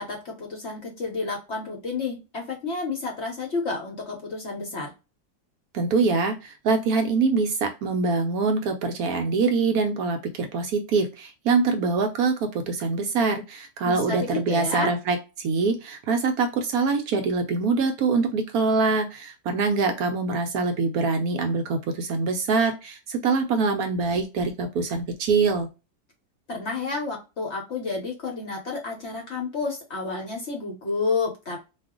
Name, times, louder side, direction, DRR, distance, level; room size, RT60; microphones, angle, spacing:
voice 1, 0.0-4.9 13.8-14.9 26.5-31.6, left 4 dB, 50° left, 0.9 m, -30 dB
voice 2, 5.7-25.7, right 4 dB, 70° right, 0.9 m, -24 dB
2.5 x 2.4 x 3.5 m
omnidirectional pair, 1.8 m